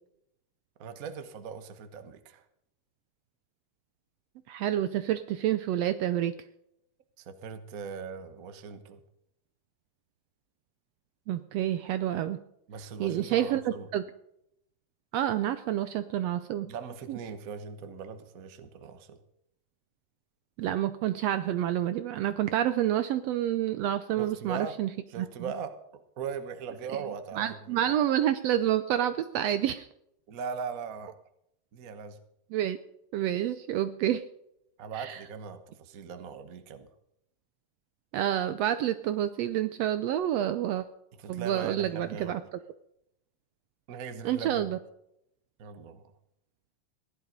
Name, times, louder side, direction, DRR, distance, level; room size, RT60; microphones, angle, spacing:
voice 1, 0.8-2.4 7.2-9.0 12.7-13.9 16.6-19.2 24.2-24.8 25.1-28.0 30.3-31.2 31.7-32.2 34.8-36.9 41.2-42.4 43.9-44.7 45.6-46.0, right 6 dB, 50° right, 9 dB, 1.0 m, -40 dB
voice 2, 4.5-6.3 11.3-12.4 13.0-14.0 15.1-16.7 17.1-17.2 20.6-24.9 25.2-25.3 27.4-29.9 32.5-32.8 33.1-34.3 34.9-35.2 38.1-40.9 41.3-42.4 44.2-44.8, right 11 dB, 75° right, 12 dB, 1.6 m, -28 dB
16.5 x 11.0 x 5.2 m, 0.78 s
omnidirectional pair, 3.4 m